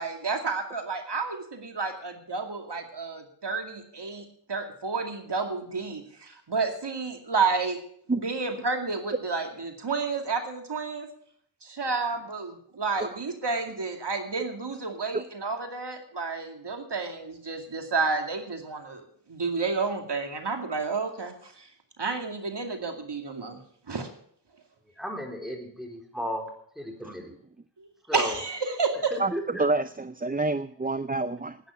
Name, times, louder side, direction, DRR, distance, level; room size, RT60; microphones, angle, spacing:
voice 1, 0.0-7.8 8.1-11.1 11.6-19.0 19.3-21.7 22.0-23.6 23.9-24.1 27.8-28.5 28.8-29.1, right 4 dB, 70° right, 4 dB, 2.4 m, -30 dB
voice 2, 25.0-27.3 28.1-28.4 28.9-29.7, equal, ahead, 2 dB, 4.0 m, -35 dB
voice 3, 29.6-31.6, right 2 dB, 20° right, 12 dB, 0.6 m, -27 dB
11.5 x 9.6 x 8.5 m, 0.64 s
cardioid pair, 45°, 43 cm